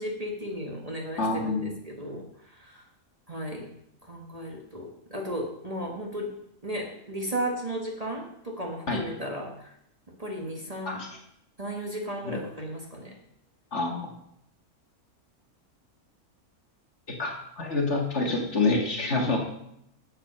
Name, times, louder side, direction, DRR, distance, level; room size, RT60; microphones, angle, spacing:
voice 1, 0.0-2.2 2.6-2.8 3.3-3.7 4.0-6.3 6.6-9.7 10.2-11.0 11.6-13.1, equal, 25° right, 0 dB, 1.6 m, -35 dB
voice 2, 1.2-1.7 8.9-9.0 10.9-11.1 12.2-12.4 13.7-14.1 17.2-19.4, left 3 dB, 50° left, 1 dB, 2.1 m, -27 dB
8.7 x 7.7 x 6.7 m, 0.76 s
omnidirectional pair, 1.6 m